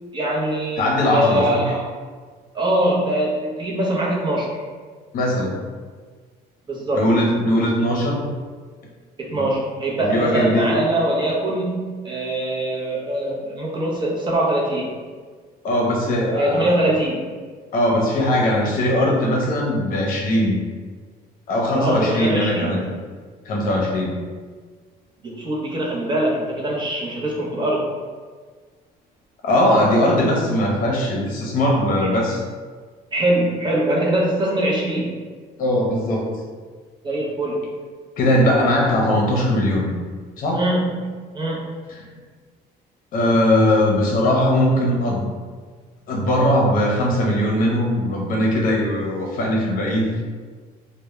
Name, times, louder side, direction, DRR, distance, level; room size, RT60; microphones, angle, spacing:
voice 1, 0.1-1.9 2.5-4.5 6.7-7.1 9.2-14.9 16.3-17.2 21.7-22.8 25.2-27.9 33.1-35.2 37.0-37.7 40.5-41.1 41.3-41.6, right 1 dB, 30° right, -3 dB, 0.6 m, -22 dB
voice 2, 0.8-1.6 5.1-5.6 6.9-8.3 9.3-9.5 10.0-10.8 15.6-16.8 17.7-20.6 21.5-22.8 23.4-24.1 29.4-32.4 35.6-36.3 38.2-39.9 40.4-40.6 43.1-45.3 46.1-50.1, left 1 dB, 55° left, -2 dB, 0.7 m, -20 dB
2.2 x 2.1 x 2.9 m, 1.5 s
cardioid pair, 110°, 17 cm